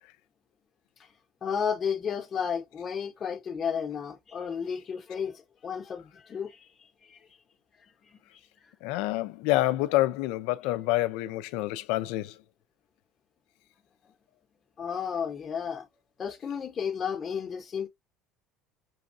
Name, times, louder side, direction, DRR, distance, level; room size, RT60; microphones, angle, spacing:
voice 1, 1.4-7.4 8.0-8.7 14.8-15.9 16.2-17.9, left 7 dB, 35° left, 0.9 m, -33 dB
voice 2, 8.8-12.3, left 17 dB, 80° left, 0.5 m, -27 dB
6.2 x 2.4 x 2.6 m
supercardioid pair, 105°, 0 cm